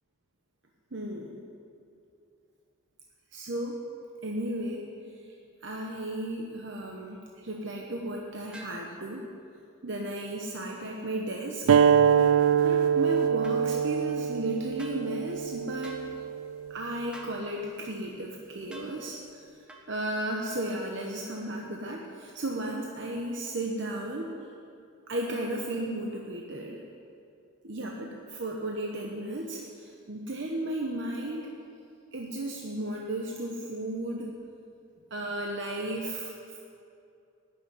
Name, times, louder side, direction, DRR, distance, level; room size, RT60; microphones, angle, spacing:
voice 1, 0.9-1.4 3.3-3.8 4.2-4.9 5.6-9.3 9.8-12.2 12.6-16.0 16.7-19.4 19.9-24.3 25.1-26.8 27.6-31.5 32.1-34.3 35.1-36.6, right 1 dB, 55° right, 0 dB, 1.0 m, -34 dB
sound 1, 8.5-8.8 13.4-13.6 14.8-15.0 15.8-16.1 17.1-17.4 18.7-18.9 19.7-19.9, right 1 dB, 5° right, 1.0 m, -46 dB
sound 2, 11.7-16.8, right 7 dB, 80° right, 0.4 m, -24 dB
12.0 x 6.8 x 9.3 m, 2.6 s
head